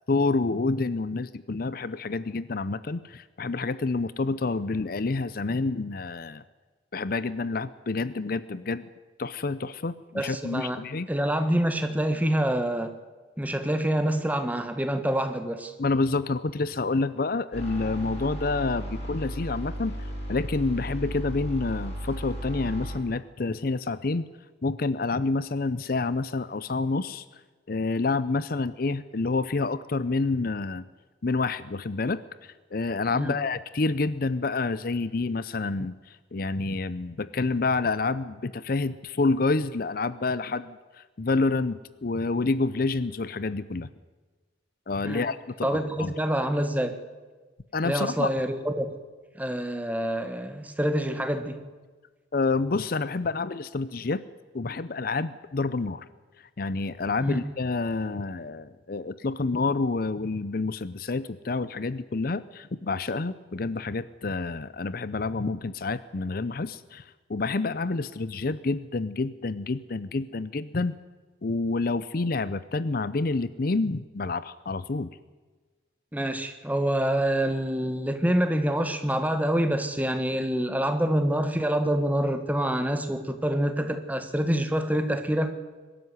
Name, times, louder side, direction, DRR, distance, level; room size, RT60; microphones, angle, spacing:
voice 1, 0.1-6.4 6.9-8.9 9.2-11.1 15.8-24.3 24.6-27.2 27.7-30.8 31.2-43.9 44.9-46.1 47.7-48.3 52.3-54.2 54.5-56.0 56.6-71.0 71.4-75.2, left 3 dB, 50° left, 16 dB, 0.6 m, -28 dB
voice 2, 10.1-10.8 11.1-12.9 13.4-15.7 33.1-33.4 45.0-45.3 45.6-47.0 47.8-49.0 49.4-51.6 57.2-57.4 76.1-85.5, right 1 dB, 10° right, 8 dB, 1.5 m, -26 dB
sound 1, 17.5-23.0, equal, 35° left, 7.6 m, -35 dB
22.0 x 13.0 x 9.4 m, 1.3 s
head